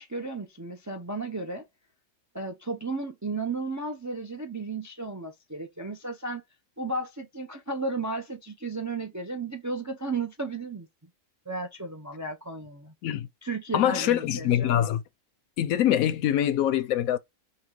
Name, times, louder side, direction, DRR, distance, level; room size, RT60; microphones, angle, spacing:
voice 1, 0.0-1.7 2.3-6.4 6.8-10.9 11.5-12.9 13.4-14.8, right 3 dB, 25° right, 0.4 m, -34 dB
voice 2, 13.7-15.0 15.6-17.2, left 11 dB, 80° left, 1.1 m, -24 dB
5.7 x 2.3 x 3.0 m
omnidirectional pair, 1.5 m